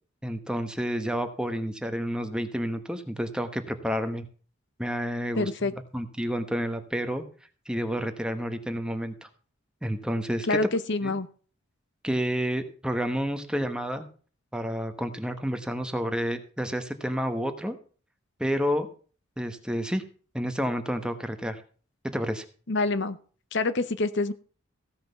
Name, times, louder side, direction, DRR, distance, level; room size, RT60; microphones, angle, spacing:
voice 1, 0.2-4.2 4.8-7.2 7.7-9.3 9.8-10.6 11.0-11.1 12.0-14.0 14.5-17.8 18.4-18.9 19.4-20.1 20.3-21.6 22.0-22.4, equal, 5° right, 8 dB, 1.0 m, -30 dB
voice 2, 5.4-5.7 10.5-11.3 22.7-23.2 23.5-24.3, left 3 dB, 55° left, 13 dB, 0.8 m, -26 dB
15.5 x 6.0 x 6.8 m, 0.40 s
head